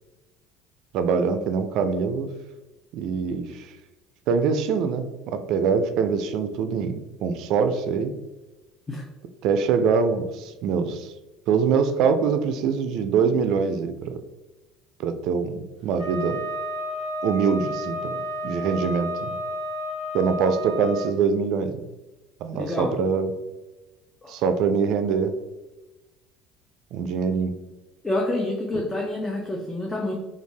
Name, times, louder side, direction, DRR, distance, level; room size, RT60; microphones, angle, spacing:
voice 1, 0.9-2.3 2.9-3.7 4.3-8.1 9.4-11.1 11.5-14.2 15.0-16.4 17.2-19.4 20.1-21.8 22.4-23.3 24.3-25.3 26.9-27.5 28.7-28.8, right 6 dB, 65° right, 9 dB, 0.3 m, -24 dB
Wind instrument woodwind instrument, 16.0-21.1, left 1 dB, 80° left, 0.9 m, -31 dB
voice 2, 22.5-22.9 24.2-24.4 28.0-30.2, left 2 dB, 15° left, 0 dB, 0.4 m, -28 dB
2.5 x 2.3 x 3.2 m, 1.1 s
supercardioid pair, 105°, 0 cm